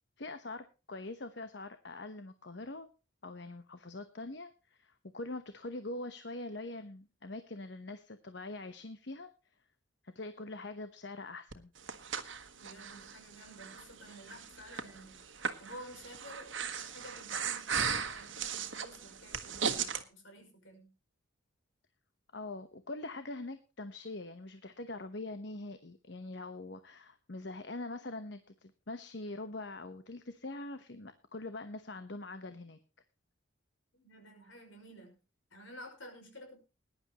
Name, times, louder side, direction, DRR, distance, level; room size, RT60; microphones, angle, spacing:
voice 1, 0.2-2.9 3.2-9.3 10.0-11.7 22.3-32.8, left 2 dB, 60° left, 10 dB, 1.0 m, -43 dB
Breathing, 11.5-20.0, right 6 dB, 70° right, 1.4 m, -37 dB
voice 2, 12.6-15.2 15.6-20.9 33.9-35.2 35.5-36.6, equal, 75° left, 4 dB, 5.6 m, -52 dB
20.5 x 11.0 x 3.0 m, 0.31 s
head